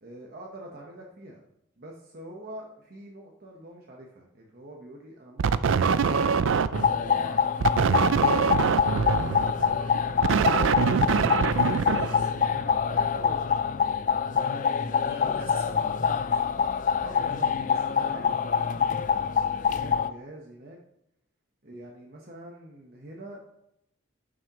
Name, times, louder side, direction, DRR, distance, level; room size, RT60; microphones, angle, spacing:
voice 1, 0.0-1.4 1.8-6.3 6.7-9.5 10.1-10.6 11.1-12.0 12.8-13.6 17.0-20.8 21.6-23.4, right 1 dB, 45° right, -1 dB, 1.1 m, -45 dB
sound 1, 5.4-7.0 7.6-12.7, right 6 dB, 70° right, 0.4 m, -24 dB
sound 2, 6.7-20.1, left 6 dB, 40° left, 0.3 m, -25 dB
voice 2, 11.5-12.3 14.3-16.5, equal, 15° right, -5 dB, 3.0 m, -44 dB
11.5 x 6.4 x 3.0 m, 0.77 s
head